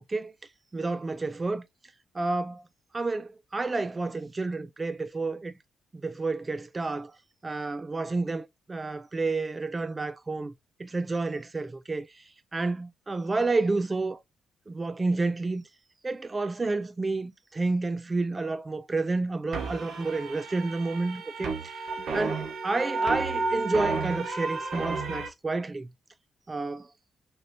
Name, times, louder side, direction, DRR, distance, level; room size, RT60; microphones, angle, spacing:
voice 1, 0.7-1.7 2.1-2.7 2.9-5.6 5.9-7.2 7.4-10.5 10.8-12.2 12.5-14.2 14.7-15.6 16.0-25.9 26.5-26.9, right 3 dB, 20° right, 0.3 m, -30 dB
sound 1, 19.5-25.3, right 3 dB, 55° right, 1.2 m, -32 dB
6.3 x 2.9 x 2.7 m
cardioid pair, 160°, 0 cm